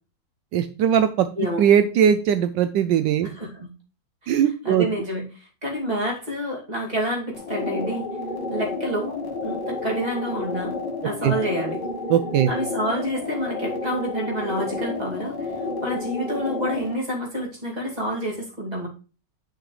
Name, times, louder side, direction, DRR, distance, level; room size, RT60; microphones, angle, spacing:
voice 1, 0.5-1.3 1.6-3.3 4.3-4.9 11.2-11.3 12.1-12.5, right 9 dB, 80° right, 10 dB, 1.2 m, -19 dB
voice 2, 3.2-3.7 4.2-8.1 8.5-9.2 9.4-10.7 11.0-11.8 12.5-15.4 15.8-18.9, equal, 20° right, -2 dB, 2.6 m, -28 dB
sound 1, 7.3-16.9, left 3 dB, 55° left, 2.1 m, -30 dB
9.9 x 6.0 x 3.2 m, 0.35 s
omnidirectional pair, 2.0 m